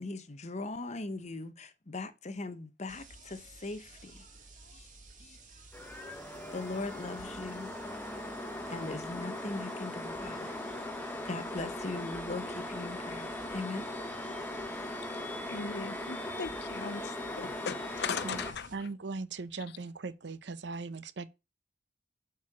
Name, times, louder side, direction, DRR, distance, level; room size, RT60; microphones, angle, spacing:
voice 1, 0.0-4.3 4.7-4.9 5.2-5.4 6.5-7.7 8.7-10.5 11.2-13.9, left 2 dB, 40° left, 0.9 m, -40 dB
sound 1, 2.9-18.8, right 3 dB, 45° right, 2.2 m, -55 dB
sound 2, 5.7-18.5, left 1 dB, 10° left, 1.2 m, -39 dB
voice 2, 15.5-18.9, left 6 dB, 60° left, 0.5 m, -38 dB
voice 3, 18.7-21.3, right 3 dB, 65° right, 0.7 m, -39 dB
8.4 x 4.6 x 6.0 m
head